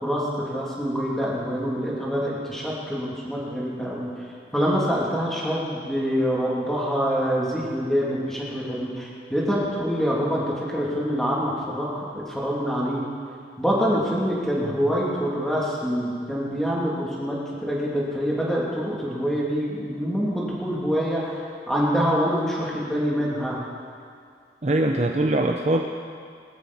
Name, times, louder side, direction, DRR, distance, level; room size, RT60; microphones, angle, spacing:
voice 1, 0.0-4.1 4.5-13.0 13.6-21.4 21.7-23.6, equal, 5° left, -6 dB, 2.8 m, -25 dB
voice 2, 24.6-26.0, right 1 dB, 40° right, 3 dB, 0.6 m, -22 dB
19.5 x 13.0 x 4.2 m, 2.2 s
head